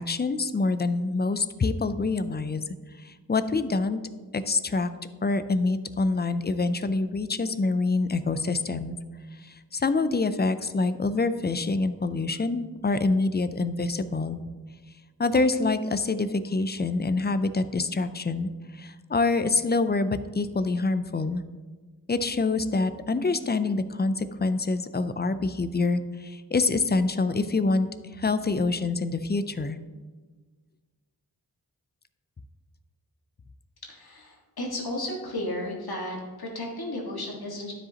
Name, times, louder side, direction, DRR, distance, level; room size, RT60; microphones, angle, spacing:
voice 1, 0.0-2.6 3.0-4.0 4.3-4.9 5.2-8.9 9.4-14.4 15.2-18.5 18.8-21.4 22.1-27.9 28.2-29.8, left 3 dB, 30° left, 12 dB, 0.4 m, -26 dB
voice 2, 33.9-37.7, left 1 dB, 80° left, -2 dB, 1.7 m, -34 dB
12.5 x 5.0 x 2.9 m, 1.4 s
wide cardioid pair, 80°, 37 cm